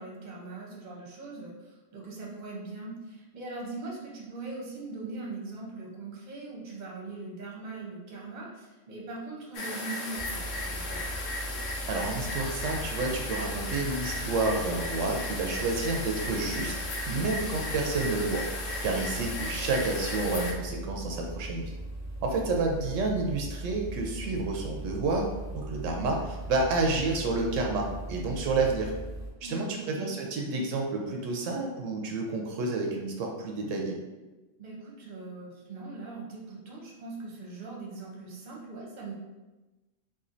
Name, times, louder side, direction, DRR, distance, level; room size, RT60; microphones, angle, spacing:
voice 1, 0.0-11.0 19.2-19.3 29.4-30.1 34.6-39.1, right 3 dB, 40° right, -3 dB, 0.8 m, -41 dB
sound 1, 9.5-20.5, left 2 dB, 80° left, 1.0 m, -36 dB
sound 2, 10.1-29.3, right 1 dB, 30° left, 1.2 m, -39 dB
voice 2, 11.9-16.7 17.1-18.5 18.8-21.7 22.2-28.9 29.4-34.0, right 3 dB, 80° right, 1 dB, 0.9 m, -30 dB
4.2 x 2.5 x 2.5 m, 1.1 s
omnidirectional pair, 1.3 m